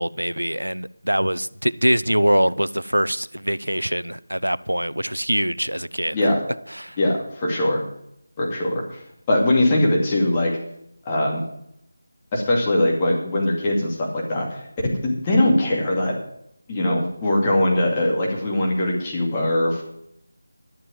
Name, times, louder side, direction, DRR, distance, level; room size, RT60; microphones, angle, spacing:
voice 1, 0.0-6.2 6.7-7.0, equal, 85° right, 0.5 m, -23 dB
voice 2, 7.0-7.8 8.4-9.0 9.3-10.5 11.0-11.4 12.3-16.2 16.7-19.8, left 1 dB, 20° left, 2.5 m, -21 dB
12.0 x 7.6 x 7.7 m
figure-of-eight pair, 160°, 0 cm